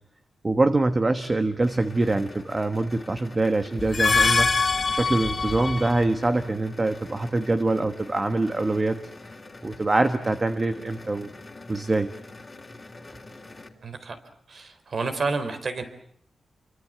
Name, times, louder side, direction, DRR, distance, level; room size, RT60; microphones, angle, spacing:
voice 1, 0.4-4.5 4.9-9.0 9.6-11.3 11.7-12.1, right 2 dB, 25° right, 9 dB, 1.4 m, -24 dB
sound 1, 1.6-13.7, left 2 dB, 20° left, 3.3 m, -45 dB
sound 2, 3.8-6.0, left 4 dB, 35° left, 2.8 m, -23 dB
voice 2, 13.8-14.2 14.5-15.8, right 4 dB, 50° right, 9 dB, 4.0 m, -29 dB
30.0 x 24.5 x 7.6 m, 0.62 s
wide cardioid pair, 145°, 0 cm